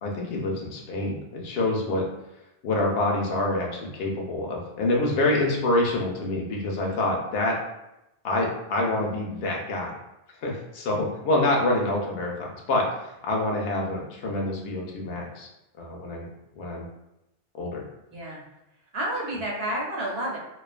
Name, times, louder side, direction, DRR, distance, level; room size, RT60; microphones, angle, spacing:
voice 1, 0.0-2.0 2.6-7.5 8.2-9.9 10.4-15.5 15.8-16.2 16.6-16.8 17.5-17.8, left 2 dB, 70° left, -1 dB, 0.8 m, -26 dB
voice 2, 18.1-18.4 18.9-20.4, right 1 dB, 75° right, -3 dB, 1.0 m, -30 dB
2.3 x 2.2 x 2.4 m, 0.89 s
omnidirectional pair, 1.0 m